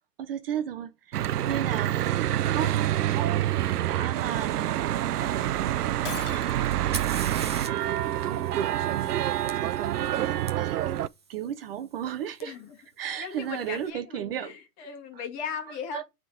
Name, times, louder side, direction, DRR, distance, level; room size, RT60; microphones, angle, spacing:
voice 1, 0.2-11.0 11.3-12.5 13.0-14.6 15.1-15.2 15.9-16.0, right 10 dB, 40° right, 0.8 m, -36 dB
Church bell / Traffic noise roadway noise, 1.1-11.1, right 12 dB, 75° right, 0.6 m, -27 dB
Shatter, 6.0-6.9, left 10 dB, 50° left, 1.1 m, -39 dB
Fire, 6.7-10.5 12.4-12.5 13.3-13.7, right 5 dB, 20° right, 0.3 m, -41 dB
voice 2, 12.4-12.8 13.0-16.0, left 6 dB, 30° left, 2.1 m, -38 dB
8.9 x 3.8 x 3.8 m
hypercardioid pair, 145°, 46 cm